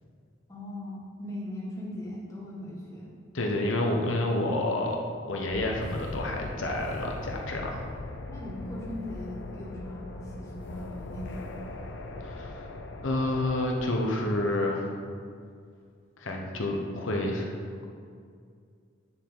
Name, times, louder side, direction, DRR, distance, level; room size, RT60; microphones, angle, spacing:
voice 1, 0.5-3.1 8.3-11.5, left 1 dB, 15° left, -6 dB, 1.8 m, -39 dB
voice 2, 3.3-5.0 5.3-7.9 12.2-12.7 13.0-14.9 16.2-17.6, left 1 dB, 90° left, 1 dB, 1.0 m, -29 dB
sound 1, 5.5-13.9, left 2 dB, 65° left, 0.6 m, -40 dB
8.7 x 6.9 x 3.9 m, 2.2 s
head